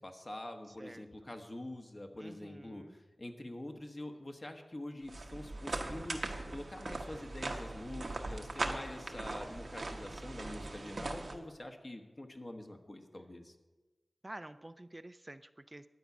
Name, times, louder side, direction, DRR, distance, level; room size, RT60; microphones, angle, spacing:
voice 1, 0.0-13.5, left 1 dB, 45° left, 4 dB, 1.3 m, -46 dB
voice 2, 2.2-2.9 14.2-15.9, right 1 dB, 35° right, 12 dB, 0.4 m, -49 dB
sound 1, 5.0-11.4, right 2 dB, 75° right, 1.1 m, -40 dB
11.5 x 4.8 x 8.1 m, 1.2 s
cardioid pair, 40°, 0 cm